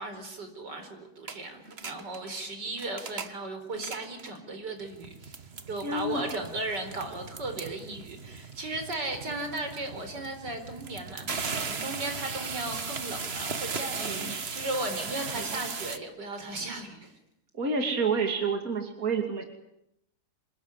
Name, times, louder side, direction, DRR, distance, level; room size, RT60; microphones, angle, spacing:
voice 1, 0.0-17.2, right 2 dB, 90° right, 6 dB, 5.0 m, -36 dB
sound 1, 1.3-1.4 1.7-2.3 2.7-3.4 3.7-4.4 4.9-16.0, right 4 dB, 40° right, 1.6 m, -37 dB
voice 2, 5.8-6.3 14.0-14.3 15.4-15.5 17.5-19.4, right 4 dB, 55° right, 4 dB, 3.2 m, -29 dB
27.0 x 20.0 x 9.9 m, 0.81 s
omnidirectional pair, 1.8 m